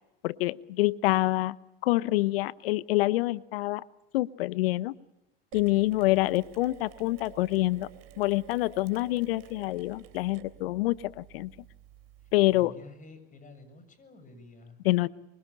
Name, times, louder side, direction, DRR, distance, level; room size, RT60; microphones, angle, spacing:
voice 1, 0.2-1.6 1.8-3.8 4.1-4.9 5.5-7.9 8.2-11.5 12.3-12.7 14.8-15.1, left 18 dB, 70° left, 18 dB, 1.0 m, -26 dB
Mechanisms, 5.5-12.6, right 12 dB, 55° right, 3.4 m, -52 dB
voice 2, 12.2-14.8, left 1 dB, 25° left, 11 dB, 7.4 m, -50 dB
25.0 x 24.5 x 8.7 m, 0.94 s
hypercardioid pair, 90°, 30 cm